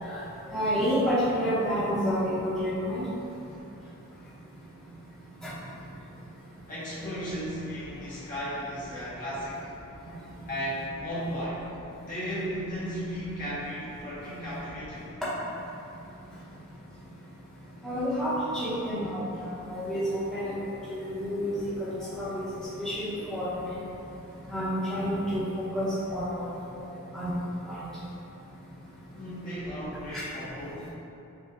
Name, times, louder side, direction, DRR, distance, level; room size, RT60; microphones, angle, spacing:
voice 1, 0.5-3.0 17.8-20.6 21.0-21.5 21.8-21.9 22.2-22.4 22.8-23.8 24.5-25.4 25.7-26.5 26.7-26.8 27.1-27.4 27.7-27.9 30.1-30.2, equal, ahead, -14 dB, 1.0 m, -29 dB
voice 2, 6.7-9.7 10.5-11.7 11.9-15.1 29.1-30.9, equal, 40° left, -10 dB, 1.1 m, -35 dB
6.3 x 2.4 x 2.5 m, 2.8 s
head